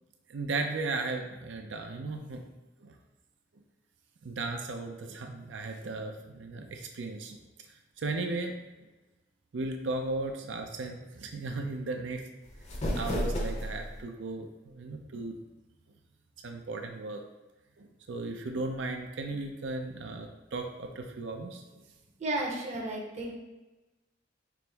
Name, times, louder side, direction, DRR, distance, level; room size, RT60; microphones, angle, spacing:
voice 1, 0.3-2.4 2.8-2.9 4.2-7.4 8.0-8.6 9.5-12.3 12.9-15.4 16.4-17.2 17.8-21.8, right 3 dB, 70° right, 4 dB, 0.5 m, -36 dB
sound 1, 12.4-14.0, equal, 35° left, 0.7 m, -32 dB
voice 2, 22.2-23.3, right 1 dB, 40° right, -1 dB, 0.8 m, -33 dB
5.9 x 2.0 x 3.3 m, 1.1 s
head